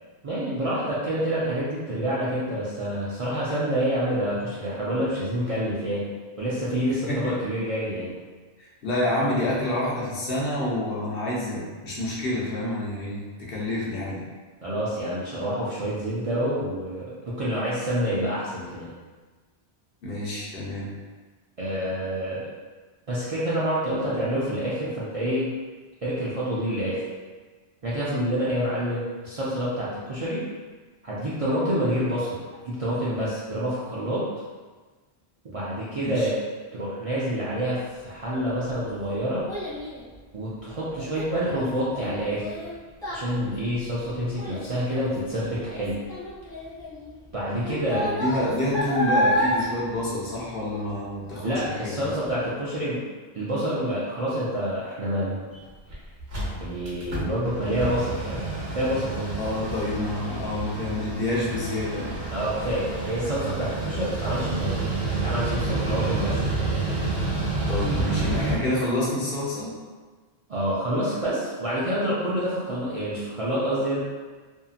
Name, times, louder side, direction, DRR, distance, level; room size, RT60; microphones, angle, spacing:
voice 1, 0.2-6.1 6.4-8.1 14.6-18.9 21.6-22.5 23.1-25.5 26.0-27.0 27.8-30.4 31.0-32.4 32.6-34.2 35.4-36.4 36.7-39.5 40.3-42.5 43.1-46.0 47.3-48.0 51.4-53.0 53.3-55.4 56.6-58.5 58.7-59.3 62.3-64.8 65.2-66.4 70.5-74.0, equal, 55° right, -9 dB, 0.4 m, -27 dB
voice 2, 6.9-7.3 8.6-14.2 20.0-20.9 36.0-36.3 47.9-52.1 59.4-62.2 67.7-69.7, left 1 dB, 60° left, -6 dB, 0.9 m, -28 dB
Child speech kid speaking, 38.5-51.0 51.3-51.7 52.2-52.3, equal, 5° left, 0.6 m, -31 dB
Mechanical fan, 55.5-55.6 55.9-56.0 56.2-68.6, right 3 dB, 70° right, 1.1 m, -29 dB
2.7 x 2.6 x 2.4 m, 1.4 s
omnidirectional pair, 1.1 m